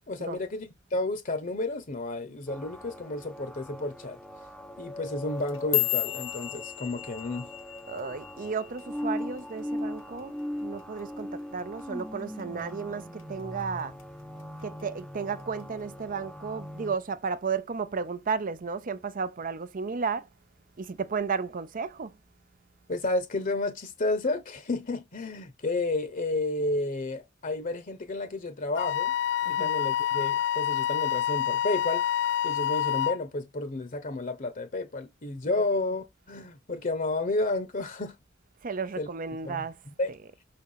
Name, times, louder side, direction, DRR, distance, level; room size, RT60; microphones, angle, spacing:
voice 1, 0.1-4.2 4.8-7.5 22.9-29.1 29.5-32.0 32.4-38.2 39.0-39.1 39.4-39.6 40.0-40.1, left 2 dB, 45° left, 0.9 m, -31 dB
sound 1, 2.5-17.0, left 1 dB, 5° left, 0.6 m, -40 dB
sound 2, 5.3-9.7 10.0-10.4 10.8-11.2 11.6-11.8 12.4-12.8 13.2-14.0 14.4-14.8 15.6-15.7, left 19 dB, 80° left, 1.5 m, -33 dB
voice 2, 7.9-13.9 14.6-20.3 20.8-22.1 29.5-29.7 38.6-39.8 40.2-40.3, right 5 dB, 45° right, 0.6 m, -33 dB
Wind instrument woodwind instrument, 28.8-33.2, left 11 dB, 60° left, 0.4 m, -27 dB
5.7 x 4.3 x 5.6 m
head